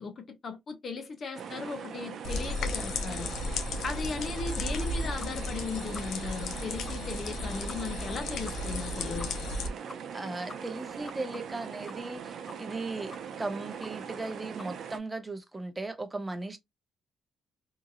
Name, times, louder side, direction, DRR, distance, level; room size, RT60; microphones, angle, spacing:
voice 1, 0.0-3.3 3.8-9.3, left 4 dB, 50° left, 0.8 m, -37 dB
sound 1, 1.3-15.0, right 7 dB, 65° right, 0.6 m, -41 dB
sound 2, 2.2-9.7, left 2 dB, 75° left, 0.5 m, -34 dB
sound 3, 5.2-5.3 5.6-5.7 5.9-6.0 6.4-6.5 6.9-7.0 7.2-7.3 7.7-7.8 8.1-8.2 8.4-8.5 8.8-8.9 9.2-9.3 9.6-9.7 9.9-10.2 10.5-12.2 12.5-12.8 13.1-13.5 13.8-13.9 14.2-14.3 14.6-14.7, left 3 dB, 20° left, 0.3 m, -46 dB
voice 2, 10.1-16.6, right 3 dB, 20° right, 0.6 m, -37 dB
2.9 x 2.6 x 2.5 m
cardioid pair, 90°, 0 cm